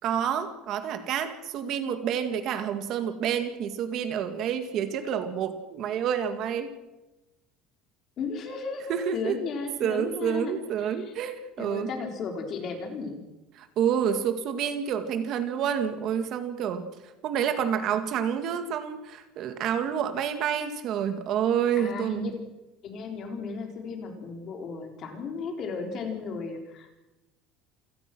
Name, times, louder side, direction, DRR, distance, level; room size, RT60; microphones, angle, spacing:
voice 1, 0.0-6.7 8.9-9.4 9.8-11.9 13.5-16.9 17.2-22.3, right 8 dB, 40° right, 9 dB, 2.0 m, -28 dB
voice 2, 8.2-10.5 11.6-13.2 21.8-22.3 22.8-26.9, left 4 dB, 35° left, 4 dB, 4.2 m, -35 dB
28.5 x 17.5 x 6.2 m, 1.0 s
cardioid pair, 175°, 0 cm